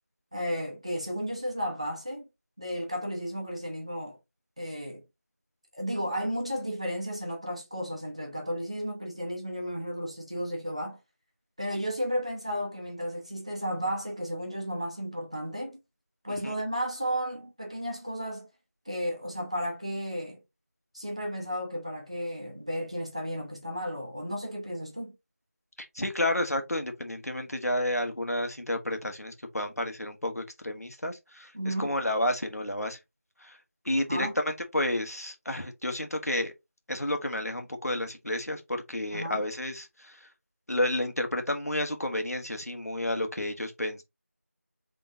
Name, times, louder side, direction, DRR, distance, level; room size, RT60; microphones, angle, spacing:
voice 1, 0.3-2.2 2.6-4.2 4.6-5.0 5.7-11.0 11.6-15.8 16.2-18.5 18.9-20.4 20.9-25.1 31.5-31.9 34.0-34.3 39.1-39.4, equal, 25° right, 0.8 m, -33 dB
voice 2, 25.8-33.0 33.4-33.6 33.8-36.5 36.9-40.2 40.7-44.0, left 1 dB, 75° left, 1.4 m, -31 dB
4.0 x 3.7 x 2.8 m
figure-of-eight pair, 175°, 8 cm